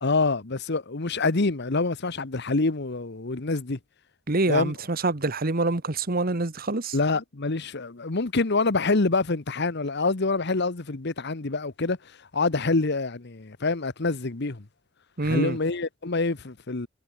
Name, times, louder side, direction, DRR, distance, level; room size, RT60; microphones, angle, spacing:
voice 1, 0.0-3.8 4.5-4.7 6.9-14.6 15.2-16.9, left 3 dB, 55° left, 1.1 m, -26 dB
voice 2, 4.3-6.9 15.2-15.6, right 2 dB, 45° right, 1.4 m, -26 dB
head